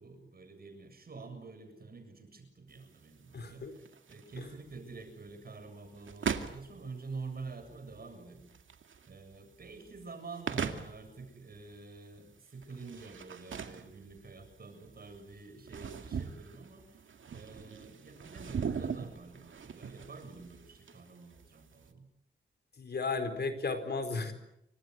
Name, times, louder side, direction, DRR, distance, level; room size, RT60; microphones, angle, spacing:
voice 1, 0.0-8.5 9.1-22.1, right 4 dB, 50° right, 6 dB, 7.6 m, -48 dB
sound 1, 2.7-21.9, right 6 dB, 90° right, 2.3 m, -41 dB
voice 2, 3.3-3.7 4.4-4.5 22.8-24.3, left 4 dB, 60° left, 8 dB, 4.5 m, -34 dB
29.0 x 25.0 x 8.0 m, 0.81 s
wide cardioid pair, 175°, 20 cm